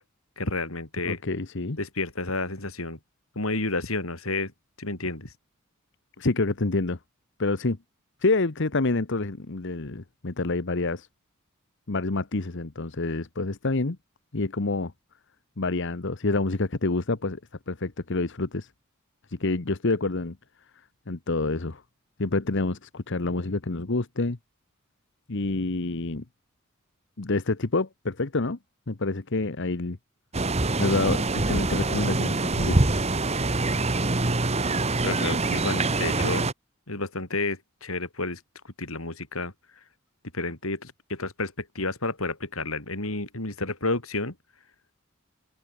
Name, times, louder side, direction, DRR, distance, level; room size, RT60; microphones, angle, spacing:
voice 1, 0.4-1.2 1.8-3.0 3.3-4.5 4.8-5.3 35.0-36.5 36.9-39.5 40.3-44.3, left 2 dB, 75° left, 5.0 m, -30 dB
voice 2, 1.1-1.8 6.2-7.0 7.4-7.8 8.2-11.1 11.9-14.0 14.3-14.9 15.6-17.4 17.7-18.7 19.3-20.4 21.1-21.8 22.2-24.4 25.3-26.2 27.2-28.6 28.9-30.0 30.8-33.0, left 3 dB, 60° left, 1.1 m, -27 dB
sound 1, 30.3-36.5, right 2 dB, 30° right, 1.4 m, -25 dB
open air
head